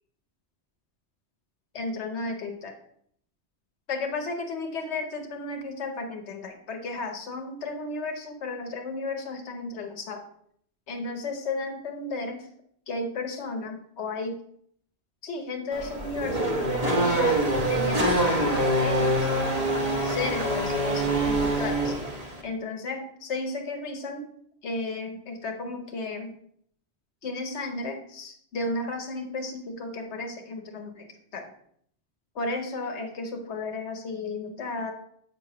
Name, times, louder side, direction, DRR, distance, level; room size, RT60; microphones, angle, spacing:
voice 1, 1.7-2.7 3.9-10.2 10.9-12.5 12.9-14.4 15.2-17.4 17.7-19.3 20.0-22.0 22.4-24.3 24.6-26.4 27.2-31.5 32.3-34.9, left 3 dB, 85° left, 4 dB, 1.2 m, -33 dB
Race car auto racing / Accelerating revving vroom, 15.7-22.4, right 1 dB, 35° right, 1.1 m, -25 dB
8.0 x 3.0 x 5.8 m, 0.67 s
omnidirectional pair, 1.1 m